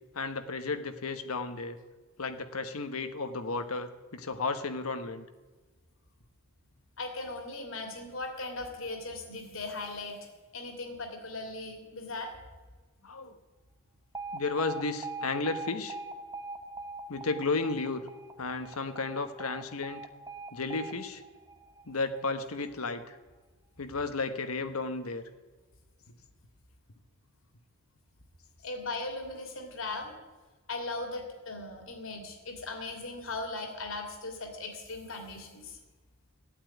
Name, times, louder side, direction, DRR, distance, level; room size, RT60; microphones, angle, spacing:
voice 1, 0.1-1.8 2.2-5.2 13.0-13.4 14.3-15.9 17.1-18.0 18.4-20.0 20.5-21.2 21.9-23.2 23.8-25.2, left 3 dB, 85° left, 9 dB, 1.2 m, -33 dB
voice 2, 7.0-12.3 28.6-30.1 30.7-35.8, left 2 dB, 65° left, 4 dB, 2.8 m, -38 dB
Alarm, 14.1-22.2, right 3 dB, 15° right, 0.8 m, -42 dB
15.0 x 8.6 x 9.3 m, 1.2 s
head